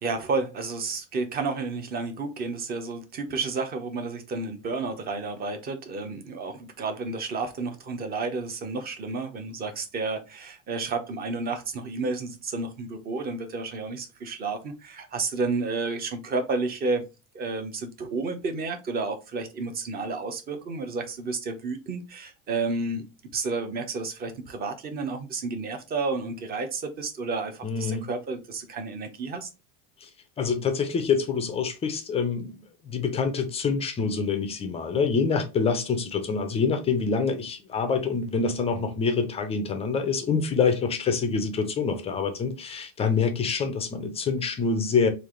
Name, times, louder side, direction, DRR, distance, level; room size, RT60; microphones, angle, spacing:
voice 1, 0.0-17.0 17.3-23.1 23.3-29.5, right 3 dB, 25° right, 0.6 m, -31 dB
voice 2, 27.6-28.0 30.0-30.1 30.4-45.1, left 5 dB, 15° left, 0.3 m, -26 dB
3.2 x 2.5 x 3.7 m
cardioid pair, 150°, 38 cm